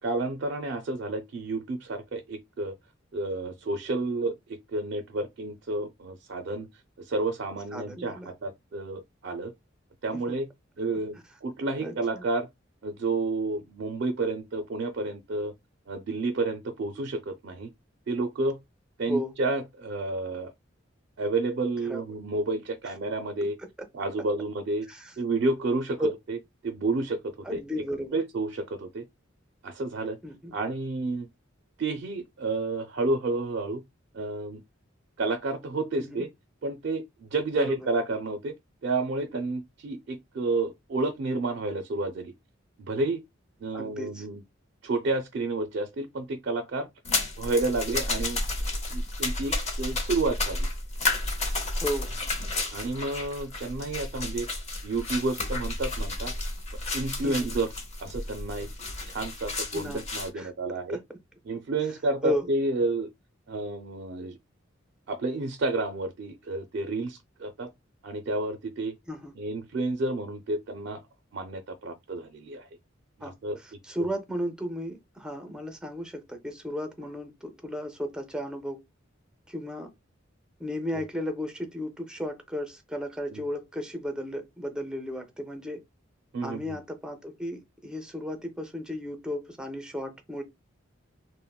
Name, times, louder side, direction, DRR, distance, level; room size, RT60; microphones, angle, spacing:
voice 1, 0.0-2.8 3.1-6.7 7.0-9.5 10.0-10.5 10.8-12.5 12.8-15.5 15.9-17.7 18.1-18.6 19.0-20.5 21.2-23.6 23.9-24.9 25.2-26.4 26.6-27.6 28.1-29.0 29.6-30.2 30.5-31.3 31.8-33.8 34.1-34.6 35.2-36.3 36.6-38.5 38.8-42.3 42.8-43.2 43.6-44.4 44.8-46.9 47.4-50.7 52.7-54.5 54.8-56.3 56.7-57.7 58.0-58.7 59.1-61.0 61.5-63.1 63.5-64.4 65.1-67.7 68.0-68.9 69.4-71.0 71.3-72.7 73.2-73.6 74.0-74.1 80.9-81.0 83.3-83.4 86.3-86.8, right 2 dB, 60° right, 0.4 m, -30 dB
voice 2, 7.7-8.3 10.1-10.4 11.8-12.2 19.1-19.3 21.9-22.0 24.9-25.1 26.0-26.1 27.4-28.2 30.2-30.5 36.0-36.2 37.5-37.9 43.7-44.3 51.8-52.1 57.2-57.5 59.7-60.0 60.3-60.5 60.9-61.0 62.2-62.5 69.1-69.3 73.2-78.8 79.5-79.9 80.6-85.8 86.4-90.4, left 1 dB, 5° right, 0.5 m, -34 dB
sound 1, 47.0-60.3, left 2 dB, 35° left, 0.7 m, -32 dB
3.5 x 2.1 x 2.3 m
head